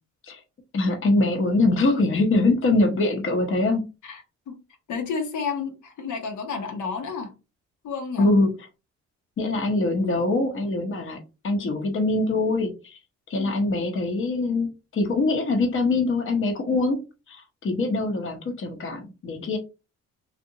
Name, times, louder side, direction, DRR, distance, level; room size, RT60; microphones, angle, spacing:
voice 1, 0.7-3.8 8.2-8.5 9.4-13.0 13.3-19.6, left 2 dB, 45° left, 0.8 m, -23 dB
voice 2, 4.0-4.6 4.9-7.3 7.8-8.3 13.3-13.6, left 5 dB, 75° left, 0.9 m, -31 dB
2.6 x 2.5 x 2.7 m
cardioid pair, 90°, 30 cm